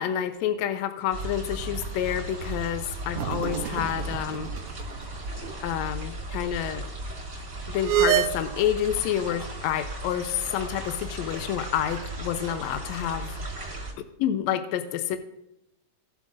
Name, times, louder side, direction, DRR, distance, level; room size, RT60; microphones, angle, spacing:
voice 1, 0.0-4.5 5.6-6.9 7.7-13.6 14.2-15.2, left 10 dB, 80° left, 8 dB, 1.9 m, -28 dB
sound 1, 1.1-13.9, right 1 dB, 25° right, 3.5 m, -36 dB
sound 2, 3.1-4.8 5.1-5.2 7.8-8.3, right 12 dB, 80° right, 1.7 m, -26 dB
17.5 x 7.6 x 2.5 m, 0.86 s
omnidirectional pair, 3.4 m